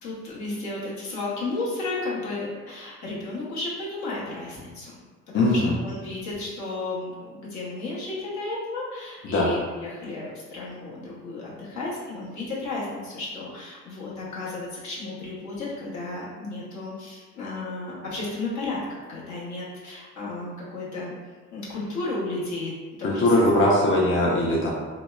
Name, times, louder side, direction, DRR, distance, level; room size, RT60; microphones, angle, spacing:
voice 1, 0.0-4.9 5.3-18.8 19.1-21.1 21.5-22.7 23.0-23.6, left 2 dB, 70° left, -6 dB, 0.9 m, -33 dB
voice 2, 5.3-5.7 9.3-9.5 23.0-24.7, left 1 dB, 45° left, -4 dB, 0.5 m, -20 dB
2.8 x 2.0 x 2.2 m, 1.4 s
cardioid pair, 90°, 30 cm